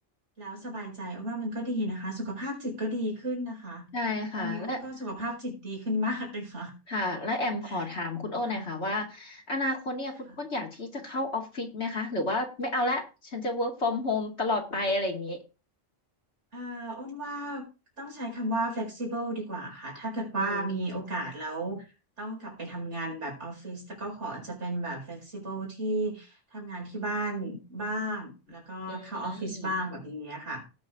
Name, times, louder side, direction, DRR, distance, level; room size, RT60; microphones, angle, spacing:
voice 1, 0.4-3.9 4.4-6.7 7.6-7.9 8.4-8.7 10.3-10.4 16.5-17.6 18.0-21.9 22.2-30.6, right 1 dB, 70° right, -2 dB, 5.1 m, -34 dB
voice 2, 3.9-4.8 6.9-15.4 20.4-20.6 28.9-29.7, left 2 dB, 65° left, 1 dB, 2.7 m, -31 dB
18.5 x 6.5 x 3.7 m, 0.31 s
omnidirectional pair, 1.2 m